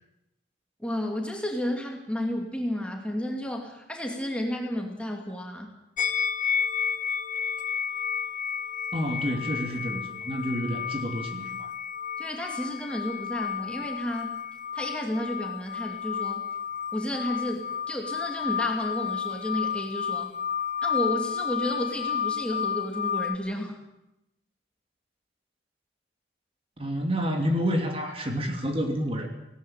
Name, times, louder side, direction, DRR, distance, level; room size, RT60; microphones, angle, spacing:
voice 1, 0.8-5.7 12.2-14.4 14.7-16.4 16.9-20.3 20.8-23.8, equal, 5° left, 1 dB, 2.7 m, -32 dB
sound 1, 6.0-23.4, left 7 dB, 45° left, 0.8 m, -31 dB
voice 2, 8.9-11.7 26.8-29.3, equal, 30° right, 3 dB, 2.8 m, -29 dB
18.5 x 18.0 x 8.9 m, 0.88 s
head